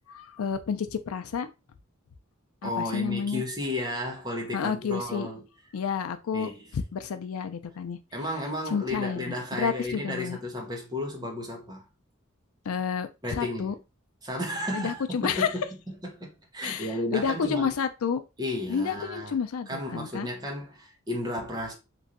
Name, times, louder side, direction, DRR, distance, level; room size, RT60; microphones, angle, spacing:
voice 1, 0.1-1.5 2.6-3.4 4.5-5.3 5.7-8.0 8.7-10.4 12.7-13.7 14.7-15.5 16.6-18.2 18.7-20.3, left 6 dB, 90° left, 0.4 m, -30 dB
voice 2, 2.6-5.5 6.3-6.6 8.1-11.8 13.2-13.8 14.2-17.7 18.4-19.4 19.7-21.7, left 1 dB, 20° right, 0.8 m, -33 dB
3.0 x 2.6 x 2.5 m
head